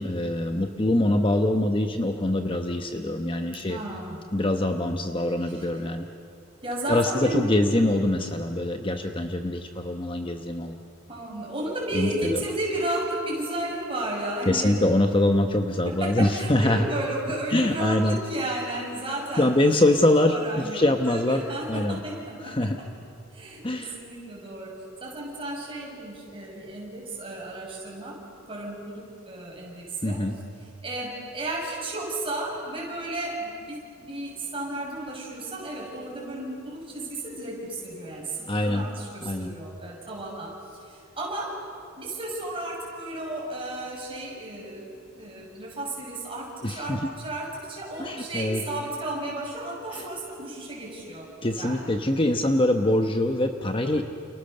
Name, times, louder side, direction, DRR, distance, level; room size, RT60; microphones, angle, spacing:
voice 1, 0.0-3.8 4.3-6.0 6.9-10.8 11.9-12.4 14.4-16.8 17.5-18.2 19.4-22.0 22.4-22.8 23.6-24.0 30.0-30.3 38.5-38.9 39.2-39.5 46.6-47.0 48.0-48.6 49.9-50.1 51.4-54.0, left 1 dB, 25° left, 6 dB, 1.0 m, -24 dB
voice 2, 3.5-4.2 5.4-5.8 6.6-7.6 11.1-14.8 15.8-19.5 20.3-22.7 23.3-28.2 28.5-30.2 30.8-41.6 42.0-51.3 51.6-51.9 52.5-52.8, right 1 dB, 25° right, -2 dB, 6.9 m, -33 dB
29.5 x 29.5 x 6.8 m, 2.5 s
head